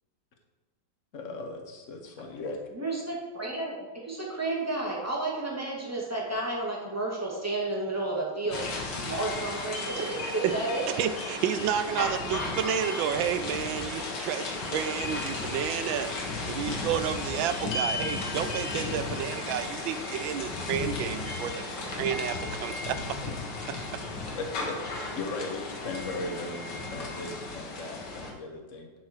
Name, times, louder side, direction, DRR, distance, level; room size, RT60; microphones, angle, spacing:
voice 1, 1.1-2.6 24.4-28.9, left 2 dB, 45° left, 2 dB, 1.6 m, -38 dB
voice 2, 2.7-10.9, right 2 dB, 10° right, -4 dB, 2.1 m, -32 dB
sound 1, 8.5-28.3, left 3 dB, 60° left, 2.0 m, -34 dB
voice 3, 10.0-16.1 16.5-23.2 23.7-24.0, right 9 dB, 85° right, 10 dB, 1.4 m, -31 dB
10.5 x 6.5 x 4.6 m, 1.3 s
omnidirectional pair, 2.1 m